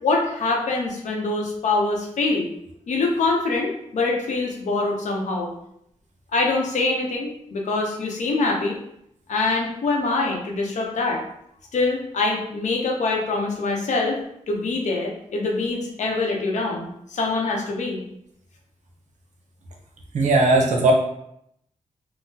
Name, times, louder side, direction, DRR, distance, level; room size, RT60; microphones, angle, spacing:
voice 1, 0.0-2.5 2.9-5.5 6.3-8.8 9.3-11.2 11.7-14.2 14.5-18.0, left 3 dB, 80° left, 0 dB, 0.7 m, -24 dB
voice 2, 20.1-20.9, right 2 dB, 75° right, 0 dB, 0.7 m, -17 dB
3.7 x 2.0 x 2.7 m, 0.75 s
cardioid pair, 80°, 12 cm